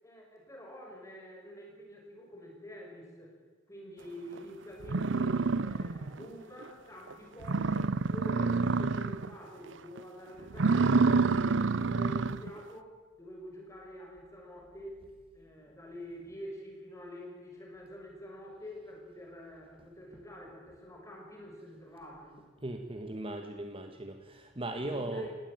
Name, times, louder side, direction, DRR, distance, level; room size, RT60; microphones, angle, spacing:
voice 1, 0.0-3.3 3.7-11.4 11.7-15.0 15.3-22.4 24.8-25.3, equal, 15° left, 0 dB, 6.3 m, -47 dB
sound 1, 4.4-4.5 4.8-6.2 6.6-6.7 7.1-7.2 7.4-9.3 9.7-10.0 10.5-12.5, right 4 dB, 70° right, 0.7 m, -28 dB
voice 2, 22.6-25.3, right 1 dB, 30° right, 6 dB, 1.4 m, -38 dB
19.5 x 17.5 x 9.0 m, 1.4 s
head